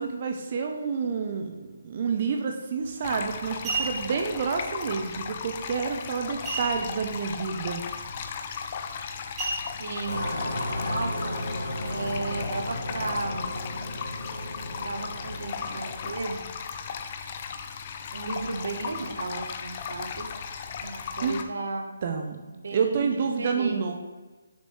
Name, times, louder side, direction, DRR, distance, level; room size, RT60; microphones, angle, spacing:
voice 1, 0.0-7.8 21.2-21.4 22.0-22.4 22.7-23.9, right 5 dB, 40° right, 4 dB, 0.5 m, -29 dB
sound 1, 2.8-3.0 3.5-4.2 6.4-7.1 7.5-7.6 8.0-8.3 9.4-10.2 10.7-10.8, right 3 dB, 15° right, 1.6 m, -32 dB
sound 2, 3.0-21.4, left 6 dB, 35° left, 0.4 m, -36 dB
voice 2, 9.8-10.2 10.9-11.4 11.8-13.5 14.8-16.4 18.1-20.3 20.8-22.0 22.6-23.1 23.4-23.9, right 3 dB, 65° right, 4 dB, 1.0 m, -34 dB
sound 3, 10.1-16.1, left 1 dB, 60° left, 1.5 m, -34 dB
6.6 x 5.3 x 3.1 m, 1.3 s
hypercardioid pair, 160°, 0 cm